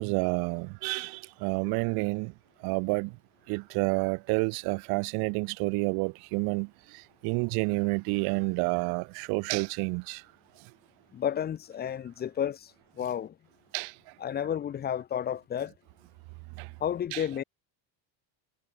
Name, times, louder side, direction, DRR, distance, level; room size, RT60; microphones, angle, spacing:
voice 1, 0.0-2.3 2.6-3.1 3.5-6.7 7.2-10.2 13.7-13.9 16.6-16.7 17.1-17.2, right 32 dB, 50° right, 0.7 m, -29 dB
voice 2, 11.1-12.7 13.0-13.4 14.2-15.7 16.8-17.4, left 9 dB, 20° left, 0.8 m, -31 dB
cardioid pair, 165°, 50 cm